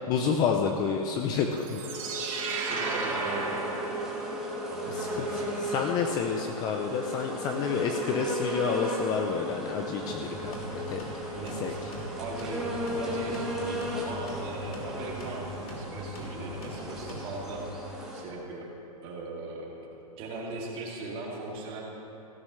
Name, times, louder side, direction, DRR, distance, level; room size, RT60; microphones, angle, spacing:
voice 1, 0.1-1.8 2.5-2.7 4.9-11.2 11.6-11.9, left 6 dB, 20° left, 4 dB, 0.5 m, -30 dB
sound 1, 1.4-18.2, equal, 5° right, 1.7 m, -36 dB
sound 2, 1.5-4.6, right 4 dB, 60° right, 3.0 m, -34 dB
voice 2, 2.6-3.5 4.7-5.7 11.3-11.8 12.2-18.7 19.0-19.7 20.2-21.8, right 2 dB, 30° right, -3 dB, 2.4 m, -39 dB
sound 3, 10.1-17.6, equal, 75° left, 3.0 m, -41 dB
16.0 x 12.5 x 3.2 m, 2.9 s
hypercardioid pair, 150°, 19 cm